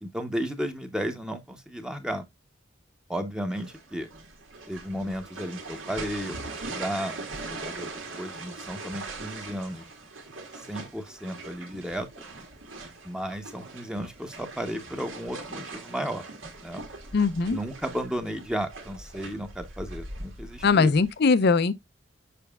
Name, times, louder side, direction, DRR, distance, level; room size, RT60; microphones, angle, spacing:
voice 1, 0.0-2.2 3.1-4.1 4.7-7.1 7.4-9.8 10.5-12.1 13.0-16.3 16.6-16.8 17.5-20.9, equal, 5° right, 0.8 m, -34 dB
sound 1, 3.5-21.1, right 3 dB, 90° right, 1.8 m, -41 dB
voice 2, 17.1-17.6 20.6-21.7, left 4 dB, 55° left, 0.5 m, -21 dB
6.9 x 6.3 x 2.3 m
head